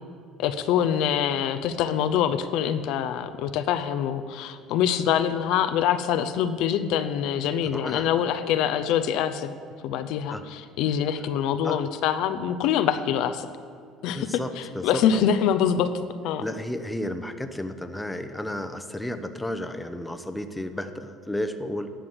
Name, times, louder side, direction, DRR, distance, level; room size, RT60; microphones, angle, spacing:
voice 1, 0.4-9.5 9.8-13.5 14.0-16.4, left 9 dB, 70° left, 10 dB, 0.6 m, -25 dB
voice 2, 7.6-8.1 10.3-10.4 11.6-11.8 14.1-15.3 16.4-21.9, left 1 dB, 5° left, 8 dB, 0.8 m, -32 dB
11.0 x 6.3 x 7.9 m, 2.2 s
supercardioid pair, 90°, 0 cm